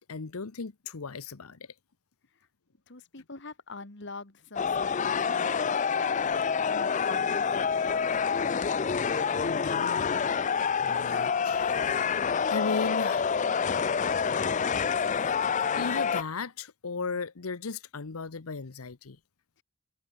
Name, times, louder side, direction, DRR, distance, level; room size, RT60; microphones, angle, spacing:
voice 1, 0.0-1.7 9.4-10.2 10.8-12.1 12.5-13.3 13.7-13.8 15.4-19.2, left 4 dB, 80° left, 0.9 m, -36 dB
voice 2, 2.9-6.1 6.7-8.8, left 3 dB, 55° left, 2.0 m, -45 dB
sound 1, 4.6-16.2, left 6 dB, 35° left, 0.4 m, -27 dB
head